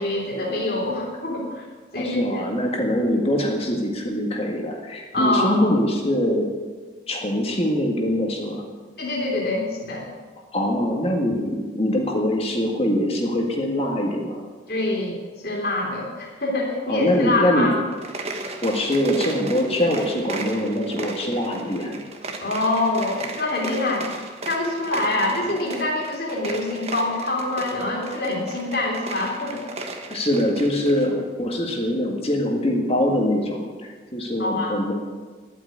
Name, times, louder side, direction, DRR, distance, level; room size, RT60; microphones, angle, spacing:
voice 1, 0.0-1.6 1.9-2.4 5.1-5.6 9.0-10.1 14.7-15.2 15.4-17.7 22.4-24.1 24.4-29.6 34.4-34.7, left 2 dB, 55° left, -2 dB, 3.4 m, -25 dB
voice 2, 2.0-6.5 7.1-8.6 10.5-14.4 16.9-17.7 18.6-22.0 30.1-35.0, left 1 dB, 30° left, 0 dB, 1.8 m, -23 dB
sound 1, 17.9-31.1, right 3 dB, 35° right, 1.3 m, -36 dB
11.5 x 8.3 x 9.5 m, 1.4 s
head